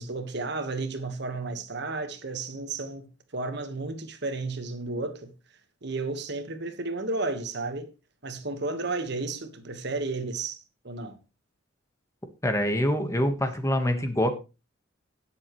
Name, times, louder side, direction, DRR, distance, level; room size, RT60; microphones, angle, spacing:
voice 1, 0.0-3.1 3.3-5.3 5.8-7.9 8.2-11.2, right 3 dB, 60° right, 1.5 m, -33 dB
voice 2, 12.4-14.3, equal, 15° left, 1.3 m, -25 dB
18.5 x 7.2 x 3.1 m
head